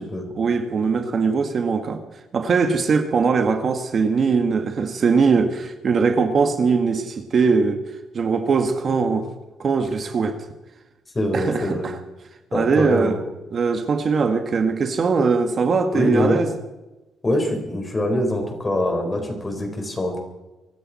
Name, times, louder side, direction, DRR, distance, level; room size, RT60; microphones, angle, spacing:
voice 1, 0.4-2.0 2.3-7.8 8.1-9.3 9.6-10.4 11.3-11.9 12.5-13.2 13.5-16.5, right 5 dB, 50° right, 7 dB, 1.5 m, -21 dB
voice 2, 11.1-11.9 12.5-13.2 15.9-16.4 17.2-20.2, left 1 dB, 25° left, 3 dB, 4.5 m, -24 dB
24.0 x 12.5 x 4.3 m, 1.1 s
cardioid pair, 90°, 0 cm